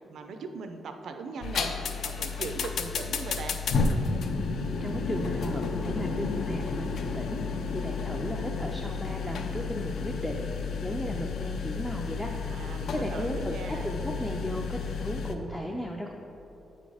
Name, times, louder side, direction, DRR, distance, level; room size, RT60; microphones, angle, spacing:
voice 1, 0.0-3.6 12.5-13.9, right 4 dB, 60° right, 6 dB, 0.5 m, -39 dB
sound 1, 1.4-15.4, left 4 dB, 60° left, 0.5 m, -32 dB
voice 2, 4.8-16.1, equal, 5° left, 0 dB, 0.4 m, -35 dB
8.5 x 4.2 x 4.8 m, 2.9 s
wide cardioid pair, 165°, 0 cm